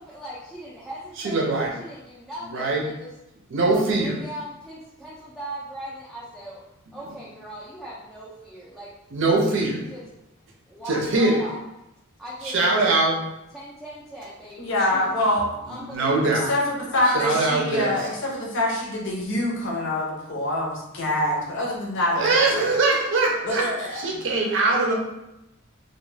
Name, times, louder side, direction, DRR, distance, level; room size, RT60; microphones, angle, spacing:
voice 1, 0.0-1.4 1.8-3.1 3.6-6.6 6.9-8.9 9.2-10.1 10.7-11.6 12.2-12.9 13.5-15.1 15.6-16.5, equal, ahead, -9 dB, 0.4 m, -39 dB
voice 2, 1.2-1.7 2.5-2.8 3.5-4.2 9.1-9.8 10.9-11.4 12.4-13.2 15.7-16.5 17.0-18.1 22.1-23.7 23.9-24.9, right 3 dB, 60° right, 0 dB, 0.6 m, -22 dB
voice 3, 14.6-15.4 16.5-22.7 23.4-24.0, left 1 dB, 60° left, -2 dB, 0.7 m, -25 dB
2.3 x 2.2 x 3.1 m, 0.89 s
head